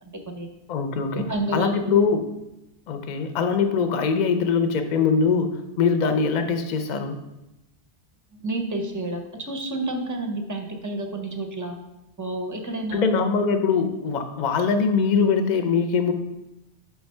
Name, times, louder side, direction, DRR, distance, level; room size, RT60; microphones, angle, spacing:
voice 1, 0.0-0.5 1.1-2.0 8.3-11.8 12.2-13.1, right 2 dB, 25° right, 5 dB, 0.4 m, -30 dB
voice 2, 0.7-1.2 1.5-2.3 2.9-5.5 5.8-7.2 12.9-16.1, left 5 dB, 50° left, 7 dB, 0.6 m, -22 dB
5.1 x 3.4 x 5.4 m, 0.92 s
omnidirectional pair, 1.1 m